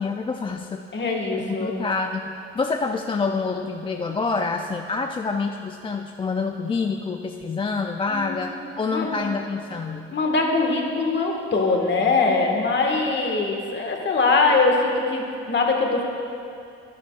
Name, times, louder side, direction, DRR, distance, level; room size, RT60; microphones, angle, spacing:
voice 1, 0.0-0.8 1.3-2.2 2.5-10.1, left 4 dB, 15° left, 4 dB, 0.4 m, -27 dB
voice 2, 0.9-1.9 8.1-8.5 8.9-9.3 10.1-16.0, left 3 dB, 35° left, 1 dB, 1.6 m, -22 dB
11.5 x 10.5 x 2.4 m, 2.6 s
supercardioid pair, 70°, 31 cm